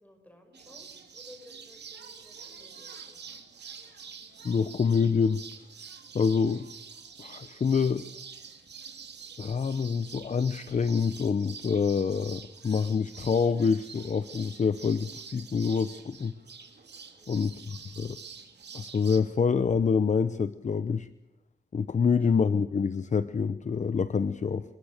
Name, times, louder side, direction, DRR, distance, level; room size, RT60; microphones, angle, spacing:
voice 1, 0.0-3.3 8.8-8.9 17.2-17.6 22.0-22.3, left 1 dB, 10° left, 5 dB, 6.0 m, -56 dB
sound 1, 0.5-19.2, right 6 dB, 65° right, 3.3 m, -47 dB
voice 2, 4.4-5.4 6.1-6.7 7.2-8.1 9.4-16.3 17.3-18.2 18.7-21.1 21.7-24.6, left 5 dB, 40° left, 13 dB, 0.9 m, -26 dB
28.0 x 22.5 x 6.6 m, 0.80 s
wide cardioid pair, 165°, 19 cm